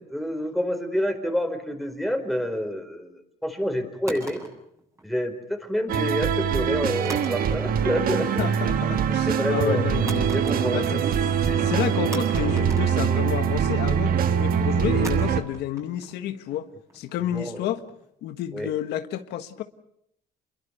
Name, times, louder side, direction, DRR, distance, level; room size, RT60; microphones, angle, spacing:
voice 1, 0.1-4.5 5.0-8.3 9.3-9.8 10.3-11.1 17.3-17.7 18.5-18.7, equal, ahead, 4.7 m, -28 dB
sound 1, 4.1-5.5 7.1-7.9 8.2-8.7 10.1-11.0 11.3-11.4 12.1-13.6 15.0-18.1, right 2 dB, 15° right, 7.3 m, -41 dB
sound 2, 5.9-15.4, right 8 dB, 60° right, 1.6 m, -23 dB
voice 2, 8.4-10.4 10.7-11.0 11.4-16.7 16.9-17.8 18.2-19.6, left 11 dB, 80° left, 1.5 m, -30 dB
28.5 x 22.5 x 6.8 m
cardioid pair, 110°, 17 cm